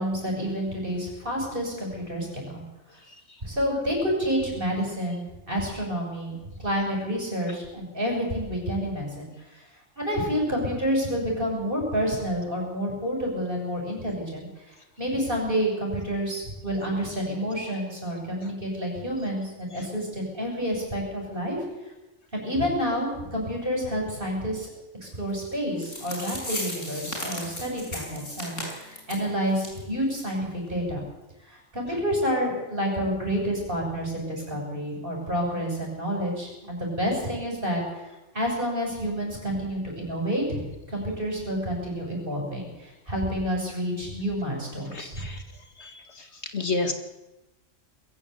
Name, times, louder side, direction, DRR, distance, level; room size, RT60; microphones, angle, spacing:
voice 1, 0.0-2.6 3.4-9.3 10.0-21.6 22.3-24.7 25.0-31.0 31.5-37.8 38.3-40.6 40.9-45.3, equal, 45° right, -1 dB, 7.5 m, -29 dB
sound 1, 25.5-25.6 25.8-29.2 29.6-29.8 30.1-30.2 30.7-30.8, left 1 dB, 75° left, 5.9 m, -35 dB
voice 2, 44.9-45.4 45.8-45.9 46.5-46.9, left 3 dB, 60° left, 6 dB, 2.2 m, -28 dB
22.0 x 15.0 x 8.4 m, 1.0 s
omnidirectional pair, 1.3 m